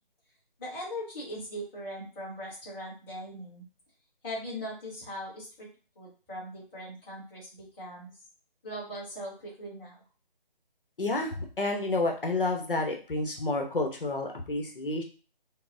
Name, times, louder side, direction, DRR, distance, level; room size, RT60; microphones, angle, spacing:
voice 1, 0.6-3.6 4.2-5.7 5.9-8.1 8.6-10.0, equal, 10° left, -9 dB, 1.1 m, -40 dB
voice 2, 11.0-15.0, left 2 dB, 65° left, 2 dB, 0.9 m, -30 dB
5.8 x 2.1 x 2.7 m, 0.36 s
figure-of-eight pair, 160°, 29 cm